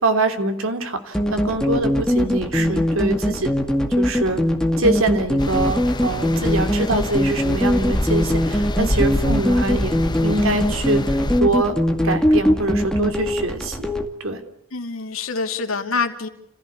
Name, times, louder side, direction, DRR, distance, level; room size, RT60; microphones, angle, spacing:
voice 1, 0.0-3.5 3.9-4.4 4.8-10.0 10.2-11.8 12.0-13.9 14.2-14.4, right 2 dB, 80° right, 7 dB, 3.0 m, -24 dB
sound 1, 1.1-14.1, equal, 5° left, 2.1 m, -21 dB
voice 2, 2.1-2.9 14.7-16.3, left 4 dB, 85° left, 5 dB, 2.7 m, -27 dB
sound 2, 5.4-11.4, left 1 dB, 20° left, 1.1 m, -27 dB
29.5 x 15.5 x 8.5 m, 0.83 s
head